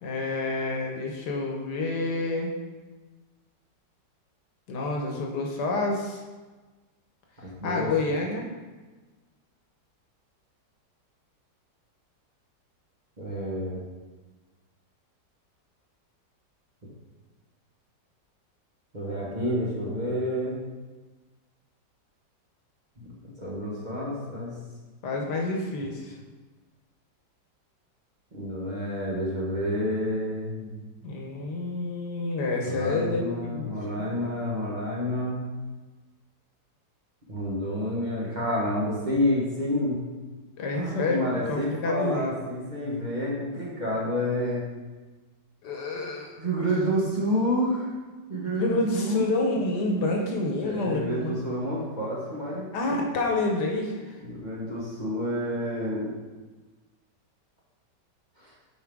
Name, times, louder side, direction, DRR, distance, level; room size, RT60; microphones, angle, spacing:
voice 1, 0.0-2.5 4.7-6.2 7.6-8.5 25.0-26.2 31.0-34.1 40.6-42.4 45.6-46.4 48.5-51.3 52.7-54.2, left 2 dB, 70° left, 1 dB, 1.5 m, -28 dB
voice 2, 7.4-7.9 13.2-13.8 18.9-20.6 23.0-24.5 28.3-30.9 32.6-35.4 37.3-40.0 40.7-44.6 46.4-47.9 48.3-49.2 50.6-52.7 54.2-56.1 58.4-58.5, equal, 30° right, -6 dB, 1.2 m, -29 dB
8.6 x 4.7 x 3.5 m, 1.3 s
omnidirectional pair, 1.9 m